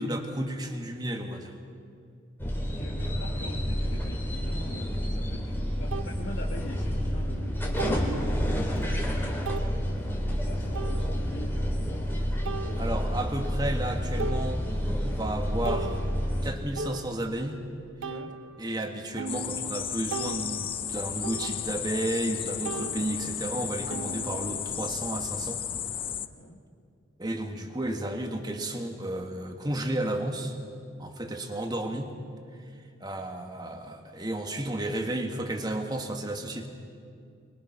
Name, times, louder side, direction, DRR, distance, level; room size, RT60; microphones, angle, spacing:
voice 1, 0.0-1.6 12.8-16.0 16.4-17.6 18.6-25.6 27.2-30.6 31.0-32.1 33.0-36.7, right 1 dB, 20° right, 4 dB, 1.6 m, -32 dB
sound 1, 2.4-16.5, equal, 10° left, 2.6 m, -29 dB
voice 2, 2.6-12.2 18.0-18.3 26.4-26.6, left 1 dB, 65° left, -2 dB, 1.9 m, -44 dB
sound 2, 5.1-5.2 5.9-6.1 7.8-8.2 8.8-8.9 9.5-9.7 10.7-11.4 12.5-13.3 13.8-13.9 14.2-15.0 15.4-17.6 18.0-22.4 22.6-24.9, right 4 dB, 80° right, 0.8 m, -39 dB
sound 3, 19.3-26.3, left 9 dB, 25° left, 0.5 m, -34 dB
26.0 x 22.5 x 6.0 m, 2.3 s
head